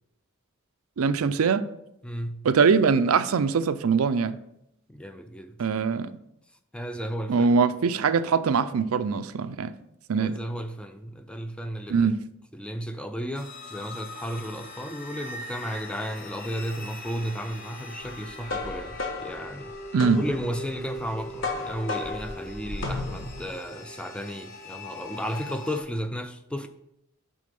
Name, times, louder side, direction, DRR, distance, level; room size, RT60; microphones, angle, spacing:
voice 1, 1.0-1.6 2.4-4.4 5.6-6.1 7.3-9.7 10.1-10.3 11.9-12.2 19.9-20.2, right 5 dB, 80° right, 0.4 m, -22 dB
voice 2, 2.0-2.5 4.9-5.6 6.7-7.5 10.2-12.1 12.5-19.7 20.2-26.7, equal, 5° left, 0.3 m, -34 dB
sound 1, 13.3-25.8, left 1 dB, 40° left, 1.2 m, -41 dB
sound 2, 18.1-23.5, left 3 dB, 60° left, 1.2 m, -34 dB
8.4 x 3.7 x 5.3 m
head